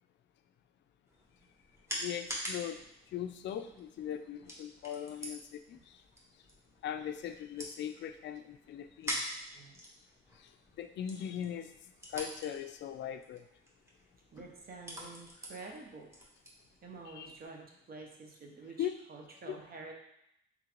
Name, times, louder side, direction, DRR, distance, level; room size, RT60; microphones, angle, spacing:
sound 1, 1.1-17.5, equal, 15° right, 1.1 m, -46 dB
voice 1, 2.0-2.8 3.1-6.0 6.8-9.4 10.4-10.5 10.8-11.7 12.1-13.4 17.2-17.3 18.8-18.9 19.5-19.6, left 9 dB, 65° left, 9 dB, 0.4 m, -39 dB
voice 2, 14.3-16.1 16.8-19.9, right 3 dB, 50° right, 1 dB, 0.9 m, -48 dB
3.7 x 3.6 x 3.0 m, 0.78 s
cardioid pair, 90°, 20 cm